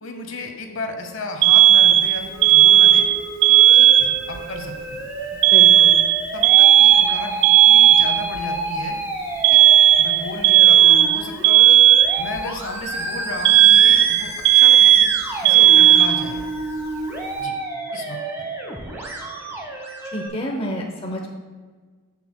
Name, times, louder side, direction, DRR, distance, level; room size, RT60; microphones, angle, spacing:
voice 1, 0.0-3.1 3.5-5.1 6.3-7.3 7.6-9.0 9.5-9.6 10.0-11.8 12.2-16.4 17.4-17.5 17.9-18.4, left 2 dB, 65° left, 4 dB, 0.9 m, -34 dB
Alarm, 1.4-4.4 5.4-8.4 9.4-12.4 13.4-16.4, right 11 dB, 60° right, 0.4 m, -13 dB
Musical instrument, 2.3-20.3, right 1 dB, 10° right, 1.0 m, -31 dB
voice 2, 5.3-6.0 20.1-21.4, equal, 25° left, 0 dB, 0.7 m, -29 dB
12.0 x 5.7 x 2.2 m, 1.5 s
head